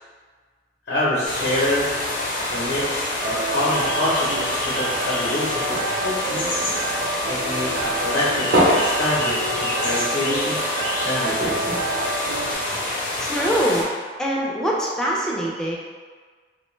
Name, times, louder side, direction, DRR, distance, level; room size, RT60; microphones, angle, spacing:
voice 1, 0.9-2.0 2.5-5.8 6.0-6.5 7.2-10.6 11.0-11.7, left 1 dB, 85° left, -8 dB, 0.7 m, -26 dB
sound 1, 1.2-13.8, left 1 dB, 50° left, 0.6 m, -27 dB
sound 2, 3.2-12.5, right 3 dB, 75° right, 0.3 m, -29 dB
sound 3, 4.8-7.4 7.8-10.1 10.4-10.5 10.8-10.9 11.4-12.9 13.5-13.6, equal, 90° right, 0.7 m, -26 dB
voice 2, 13.2-13.9 14.2-15.8, equal, 5° left, -4 dB, 0.3 m, -23 dB
2.6 x 2.1 x 3.0 m, 1.5 s
head